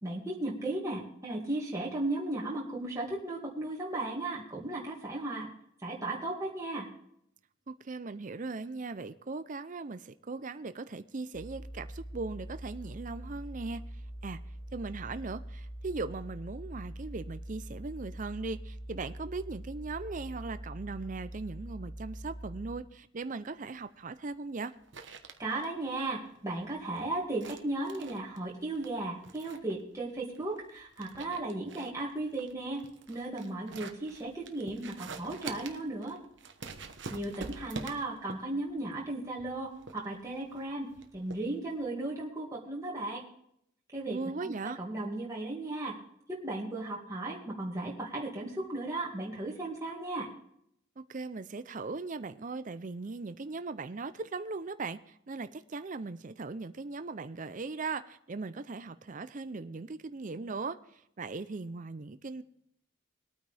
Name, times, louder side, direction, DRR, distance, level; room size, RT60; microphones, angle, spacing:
voice 1, 0.0-5.5 5.8-6.9 25.4-32.8 33.1-36.2 37.1-40.9 41.1-43.2 43.9-46.0 46.3-50.3, right 2 dB, 15° right, -4 dB, 2.2 m, -36 dB
voice 2, 7.7-13.8 14.2-14.4 14.7-24.7 44.1-44.8 51.0-62.4, right 3 dB, 40° right, 11 dB, 0.5 m, -39 dB
sound 1, 11.3-22.8, right 1 dB, 60° left, 3.1 m, -43 dB
sound 2, 23.2-41.9, right 4 dB, 60° right, 1.1 m, -48 dB
21.5 x 9.1 x 3.4 m, 0.73 s
head